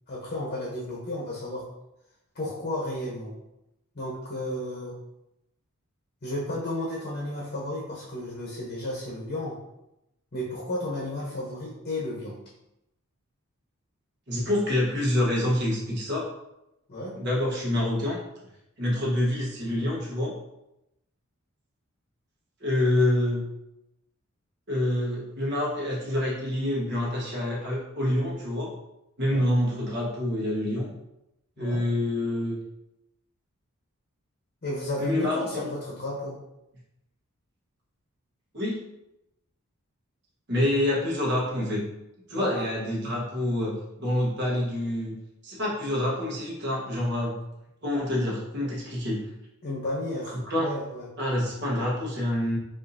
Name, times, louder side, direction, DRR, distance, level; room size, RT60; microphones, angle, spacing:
voice 1, 0.1-1.6 2.3-3.3 3.9-4.9 6.2-9.6 10.3-12.3 16.9-17.1 29.2-29.5 31.6-31.8 34.6-36.4 42.3-42.6 49.6-51.1, left 1 dB, 45° left, -4 dB, 0.9 m, -33 dB
voice 2, 14.3-16.2 17.1-18.2 18.8-20.3 22.6-23.4 24.7-28.7 29.2-30.9 31.6-32.6 35.0-35.7 38.5-38.8 40.5-41.8 42.3-45.1 45.4-47.3 47.8-49.2 50.5-50.7 51.2-52.6, left 1 dB, 50° right, -4 dB, 1.2 m, -27 dB
4.8 x 2.6 x 2.7 m, 0.88 s
head